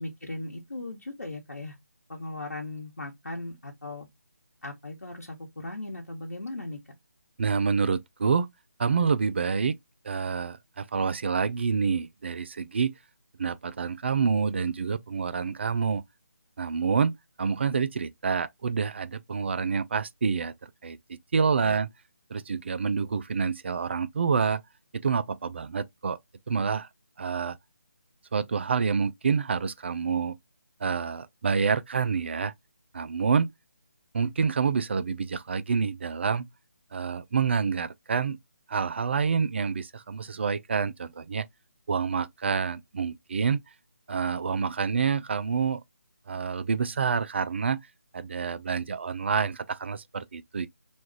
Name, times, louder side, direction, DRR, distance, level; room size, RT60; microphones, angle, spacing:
voice 1, 0.0-1.8 2.1-4.1 4.6-7.0 21.6-21.7, left 2 dB, 80° left, 1.2 m, -38 dB
voice 2, 7.4-8.5 8.8-9.8 10.0-12.9 13.4-16.0 16.6-20.5 20.8-21.9 22.3-24.6 24.9-26.2 26.5-26.9 27.2-27.6 28.3-30.4 30.8-32.5 32.9-33.5 34.1-36.5 36.9-38.4 38.7-41.5 41.9-43.6 44.1-45.8 46.3-47.8 48.1-50.7, right 5 dB, 45° right, 0.4 m, -27 dB
3.1 x 2.4 x 4.4 m
figure-of-eight pair, 150°, 8 cm